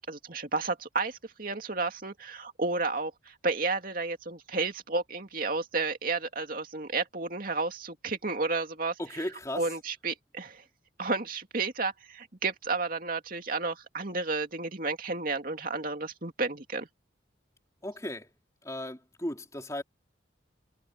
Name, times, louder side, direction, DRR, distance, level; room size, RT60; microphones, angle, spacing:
voice 1, 0.0-8.9 9.5-10.6 11.0-16.9, right 3 dB, 45° right, 2.6 m, -32 dB
voice 2, 9.0-9.7 17.8-18.3 18.6-19.8, left 1 dB, 15° left, 3.4 m, -36 dB
head